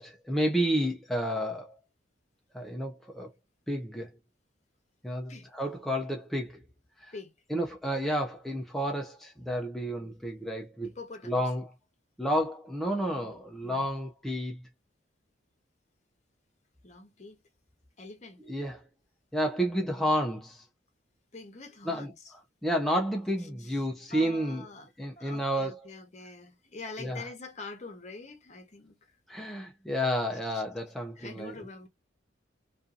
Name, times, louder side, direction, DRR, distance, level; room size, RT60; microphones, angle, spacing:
voice 1, 0.0-1.8 2.5-3.3 3.7-4.1 5.0-6.6 7.0-7.1 7.5-10.9 11.2-11.7 12.2-14.6 18.5-18.8 19.3-20.7 21.9-22.1 22.6-24.6 25.0-25.8 27.0-27.3 29.3-31.5, equal, ahead, 0.3 m, -31 dB
voice 2, 10.8-11.4 13.6-13.9 16.8-17.4 18.0-18.4 21.3-22.1 23.6-24.9 25.2-28.9 30.5-30.6 31.2-31.9, left 3 dB, 40° left, 0.8 m, -45 dB
2.5 x 2.4 x 2.4 m
head